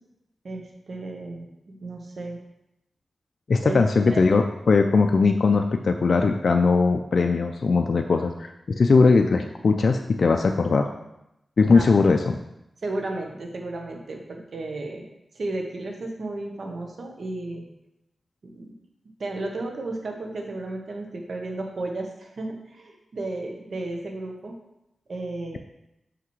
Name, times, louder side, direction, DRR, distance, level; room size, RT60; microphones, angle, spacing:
voice 1, 0.4-2.4 3.6-4.3 11.7-12.0 12.8-15.1 15.3-17.7 18.4-18.7 19.2-24.6 25.1-25.6, right 2 dB, 65° right, 2 dB, 1.0 m, -33 dB
voice 2, 3.5-8.5 8.8-10.9 11.6-12.4, left 4 dB, 65° left, 4 dB, 0.3 m, -20 dB
5.8 x 5.7 x 3.1 m, 0.87 s
cardioid pair, 70°, 0 cm